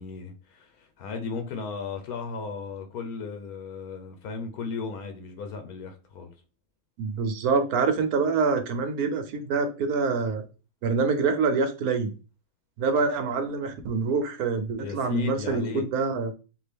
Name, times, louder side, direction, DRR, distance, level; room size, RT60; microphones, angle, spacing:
voice 1, 0.0-6.3 14.8-15.9, left 5 dB, 80° left, 1.2 m, -36 dB
voice 2, 7.0-10.4 10.8-12.1 12.8-16.3, right 4 dB, 85° right, 1.2 m, -26 dB
3.6 x 2.6 x 3.3 m
omnidirectional pair, 1.5 m